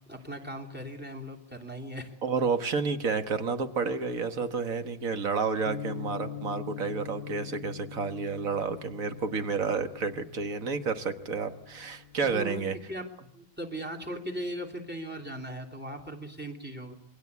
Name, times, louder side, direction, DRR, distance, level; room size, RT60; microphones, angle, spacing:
voice 1, 0.1-2.1 12.3-13.0 13.3-16.9, equal, 5° right, 5 dB, 3.2 m, -38 dB
voice 2, 2.2-12.8, right 5 dB, 85° right, 8 dB, 1.8 m, -30 dB
sound 1, 5.6-12.4, left 8 dB, 50° left, 1.6 m, -43 dB
27.5 x 22.5 x 8.4 m, 0.71 s
omnidirectional pair, 1.4 m